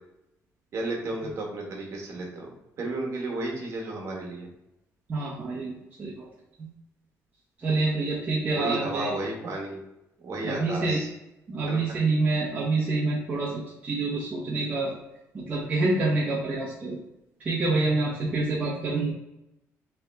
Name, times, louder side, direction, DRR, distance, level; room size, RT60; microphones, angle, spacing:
voice 1, 0.7-4.5 8.5-9.8 10.2-11.1 11.7-11.8, right 2 dB, 50° right, -1 dB, 1.1 m, -33 dB
voice 2, 5.1-5.7 6.0-6.3 6.6-6.7 7.6-9.1 10.4-11.0 11.5-14.9 15.3-17.0 17.4-19.1, right 3 dB, 25° right, -7 dB, 0.8 m, -27 dB
3.4 x 3.1 x 3.4 m, 0.90 s
cardioid pair, 155°, 6 cm